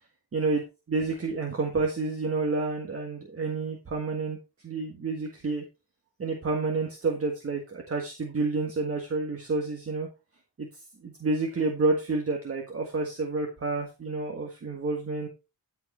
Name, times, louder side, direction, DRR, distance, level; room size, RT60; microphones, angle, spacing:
voice 1, 0.3-0.6 0.9-4.4 4.6-5.6 6.2-10.1 10.6-10.7 11.0-15.3, right 3 dB, 35° right, 2 dB, 1.6 m, -29 dB
13.5 x 4.9 x 4.3 m, 0.28 s
wide cardioid pair, 175°, 40 cm